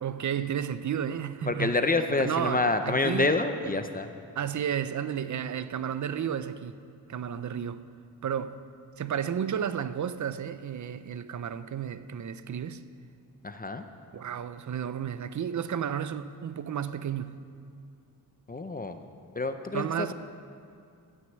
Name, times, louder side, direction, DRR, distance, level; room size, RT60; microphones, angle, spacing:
voice 1, 0.0-1.8 2.2-3.4 3.6-3.7 4.4-6.8 7.1-7.8 8.2-8.6 9.0-12.8 14.1-17.4 19.7-20.1, right 8 dB, 50° right, 0.5 m, -32 dB
voice 2, 1.5-4.1 13.4-13.8 18.5-19.1 19.4-20.1, left 3 dB, 25° left, 0.5 m, -27 dB
12.0 x 9.5 x 7.3 m
wide cardioid pair, 165°, 39 cm